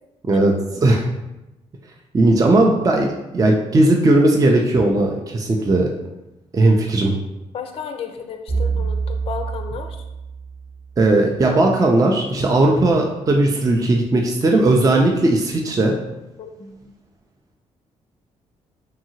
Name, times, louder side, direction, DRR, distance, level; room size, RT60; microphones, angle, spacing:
voice 1, 2.1-5.9 6.5-7.1 11.0-16.0, right 2 dB, 25° right, 1 dB, 0.4 m, -17 dB
voice 2, 7.5-10.0 16.4-16.9, left 6 dB, 45° left, 5 dB, 0.4 m, -33 dB
sound 1, 8.5-10.9, right 5 dB, 80° right, 1.1 m, -26 dB
2.8 x 2.6 x 2.7 m, 0.96 s
supercardioid pair, 55°, 14 cm